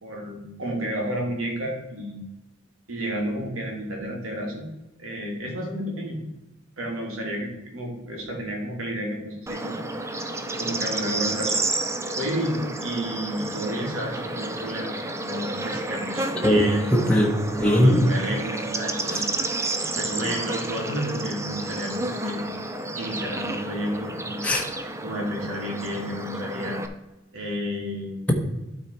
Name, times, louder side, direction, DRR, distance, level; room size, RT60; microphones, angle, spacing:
voice 1, 0.0-2.2 2.9-4.6 5.0-6.2 6.8-9.9 10.6-11.5 12.1-17.1 17.6-19.3 19.8-22.4 22.9-24.6 25.0-26.8 27.3-28.2, equal, 85° right, 0 dB, 2.5 m, -31 dB
Bird / Insect, 9.5-26.9, right 2 dB, 15° right, 0.5 m, -31 dB
voice 2, 16.4-18.0 24.4-24.6, equal, 5° left, -1 dB, 1.1 m, -20 dB
12.0 x 4.1 x 4.4 m, 0.98 s
head